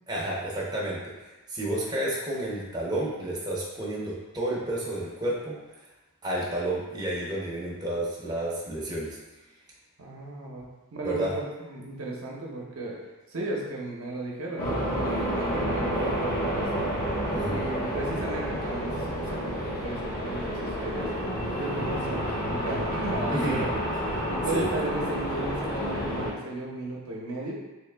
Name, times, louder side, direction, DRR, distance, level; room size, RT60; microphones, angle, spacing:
voice 1, 0.1-5.5 6.2-9.2 11.0-11.3 17.3-17.6 23.3-23.6 24.5-24.7, right 1 dB, 20° right, -6 dB, 0.6 m, -31 dB
voice 2, 10.0-13.0 13.3-16.9 17.4-21.1 21.6-22.2 22.5-23.8 24.3-27.5, right 2 dB, 65° right, -2 dB, 0.7 m, -35 dB
sound 1, 14.6-26.3, equal, 40° left, 0.7 m, -30 dB
3.3 x 2.8 x 3.3 m, 1.1 s
head